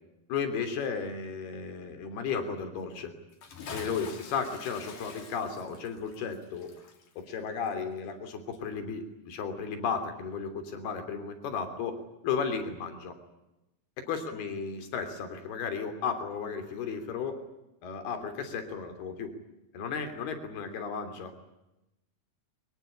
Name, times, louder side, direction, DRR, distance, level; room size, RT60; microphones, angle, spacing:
voice 1, 0.3-3.1 3.7-6.7 7.2-13.2 14.1-17.5 17.8-19.3 19.7-21.3, left 6 dB, 85° left, 8 dB, 5.1 m, -34 dB
Bathtub (filling or washing) / Splash splatter, 3.3-8.3 8.5-8.6, left 5 dB, 60° left, 4.6 m, -46 dB
23.5 x 21.0 x 9.9 m, 0.94 s
omnidirectional pair, 4.4 m